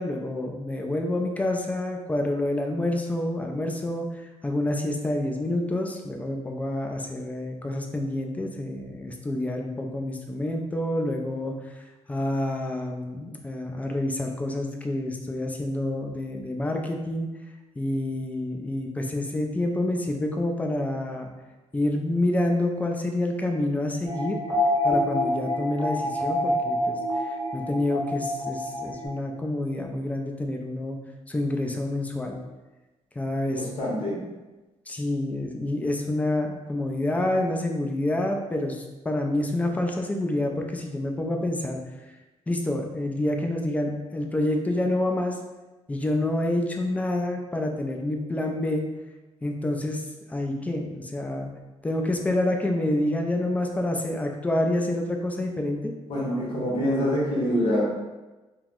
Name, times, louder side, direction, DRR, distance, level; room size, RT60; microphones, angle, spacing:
voice 1, 0.0-11.7 12.1-17.3 17.8-21.3 21.7-24.4 24.8-31.0 31.3-32.4 33.2-33.7 34.9-41.8 42.5-45.4 45.9-48.9 49.4-51.5 51.8-55.9, left 1 dB, 10° left, 2 dB, 0.3 m, -28 dB
sound 1, 24.0-29.1, left 1 dB, 25° right, 0.9 m, -27 dB
voice 2, 33.6-34.2 56.1-57.8, equal, 50° left, -5 dB, 1.0 m, -25 dB
2.8 x 2.0 x 3.6 m, 1.1 s
cardioid pair, 120°, 12 cm